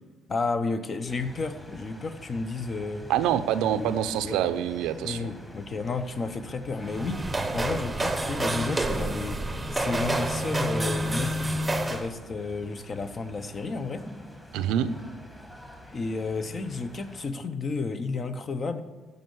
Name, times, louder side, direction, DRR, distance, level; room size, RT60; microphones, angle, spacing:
voice 1, 0.3-3.1 4.2-4.5 5.0-7.2 7.5-9.4 9.7-11.4 11.8-14.1 15.9-18.8, left 4 dB, 35° left, 10 dB, 0.8 m, -32 dB
sound 1, 1.1-17.3, equal, 10° left, 1.5 m, -47 dB
voice 2, 3.1-5.3 14.5-15.0, right 10 dB, 85° right, 11 dB, 0.7 m, -26 dB
sound 2, 6.8-12.1, right 1 dB, 10° right, 0.9 m, -28 dB
13.5 x 5.4 x 8.0 m, 1.2 s
cardioid pair, 120°, 0 cm